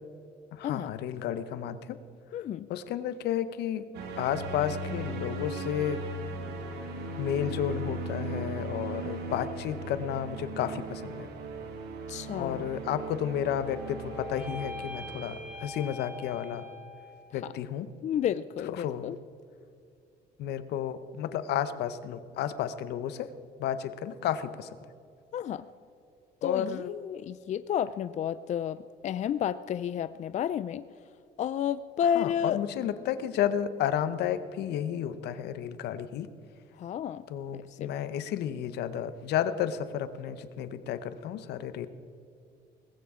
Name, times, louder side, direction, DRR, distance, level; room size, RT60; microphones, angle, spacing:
voice 1, 0.5-2.0 2.3-2.4 2.7-3.9 4.2-6.0 7.2-11.3 12.3-16.7 17.3-17.9 18.7-19.1 20.4-23.3 23.6-24.7 26.4-26.9 32.1-36.3 37.3-41.9, left 9 dB, 75° left, 13 dB, 0.9 m, -32 dB
voice 2, 2.3-2.7 12.1-12.7 18.0-19.2 25.3-25.7 26.4-30.8 31.4-32.6 36.8-37.2 37.5-37.9, left 9 dB, 45° left, 14 dB, 0.4 m, -31 dB
sound 1, 3.9-15.6, right 2 dB, 80° right, 2.0 m, -38 dB
sound 2, 13.2-17.5, left 2 dB, 10° right, 4.1 m, -44 dB
19.0 x 15.5 x 3.7 m, 2.5 s
cardioid pair, 110°, 17 cm